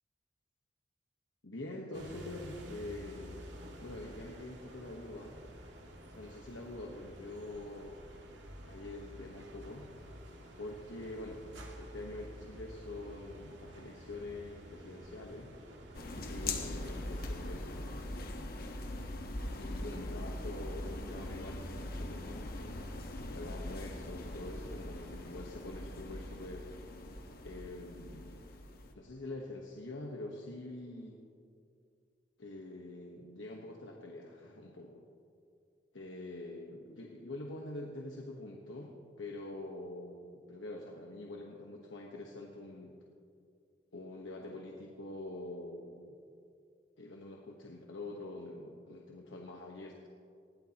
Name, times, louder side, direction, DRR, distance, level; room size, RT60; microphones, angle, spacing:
voice 1, 1.4-3.5 3.8-5.4 6.1-8.0 8.7-9.9 10.6-11.5 11.8-15.5 16.3-17.9 19.1-19.2 19.6-22.8 23.3-26.7 27.4-28.5 28.9-31.2 32.4-35.0 35.9-42.9 43.9-46.2 47.0-50.1, left 2 dB, 90° left, -1 dB, 1.2 m, -45 dB
sound 1, 1.9-17.5, equal, 70° right, 2.0 m, -51 dB
sound 2, 15.9-28.9, left 1 dB, 50° left, 1.2 m, -41 dB
20.0 x 16.0 x 2.9 m, 2.4 s
head